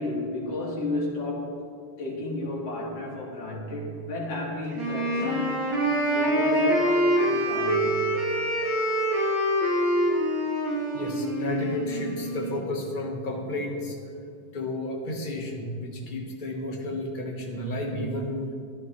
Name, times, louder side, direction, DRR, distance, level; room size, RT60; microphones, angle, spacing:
voice 1, 0.0-1.7 2.0-5.7 6.1-8.2, left 1 dB, 65° left, -5 dB, 2.7 m, -32 dB
Wind instrument woodwind instrument, 4.7-12.6, equal, 55° right, 3.3 m, -25 dB
voice 2, 10.9-14.0 14.5-18.5, left 1 dB, 30° left, 0 dB, 1.2 m, -32 dB
15.5 x 11.0 x 3.2 m, 2.3 s
omnidirectional pair, 2.3 m